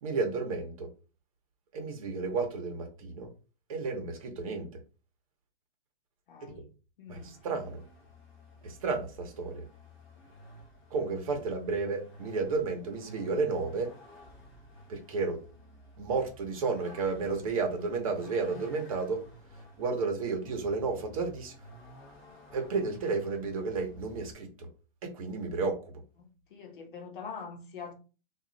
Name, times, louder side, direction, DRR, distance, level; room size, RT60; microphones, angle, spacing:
voice 1, 0.0-0.9 1.7-3.3 3.7-4.7 6.4-6.5 7.1-7.2 7.4-7.8 8.6-9.6 10.9-13.9 14.9-15.4 16.0-19.2 19.8-21.5 22.5-24.7 25.0-25.9, right 4 dB, 35° right, 0.9 m, -32 dB
voice 2, 6.3-6.7 7.0-7.3 26.5-27.9, left 5 dB, 55° left, 1.0 m, -43 dB
Vehicle, 7.1-24.3, equal, 25° left, 1.0 m, -53 dB
2.9 x 2.5 x 3.9 m
hypercardioid pair, 170°, 30 cm